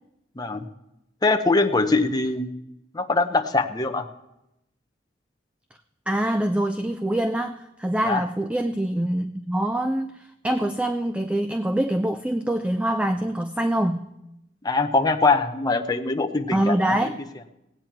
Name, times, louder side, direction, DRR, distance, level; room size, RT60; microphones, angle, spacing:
voice 1, 0.4-0.7 1.2-2.5 2.9-4.1 8.0-8.2 14.6-17.0, left 3 dB, 20° left, 4 dB, 0.8 m, -22 dB
voice 2, 6.1-14.1 16.5-17.2, right 1 dB, 5° right, 8 dB, 0.4 m, -25 dB
18.0 x 8.9 x 4.5 m, 0.88 s
head